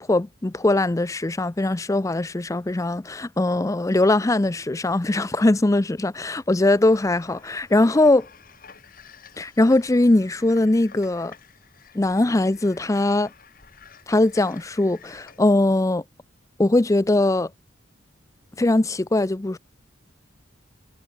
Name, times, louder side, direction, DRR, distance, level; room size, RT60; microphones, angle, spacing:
voice 1, 0.0-8.3 9.4-11.3 11.9-13.3 14.1-16.0 16.6-17.5 18.6-19.6, left 2 dB, 15° left, 0.5 m, -21 dB
sound 1, 6.8-15.4, left 7 dB, 50° left, 2.6 m, -50 dB
head